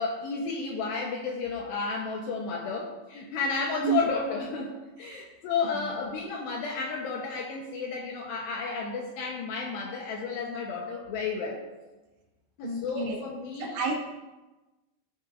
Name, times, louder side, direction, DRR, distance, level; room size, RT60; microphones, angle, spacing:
voice 1, 0.0-11.6 12.6-13.7, left 4 dB, 75° left, -1 dB, 2.8 m, -32 dB
voice 2, 12.6-13.2 13.6-14.0, right 5 dB, 70° right, -2 dB, 3.8 m, -30 dB
16.0 x 7.3 x 2.5 m, 1.1 s
omnidirectional pair, 5.4 m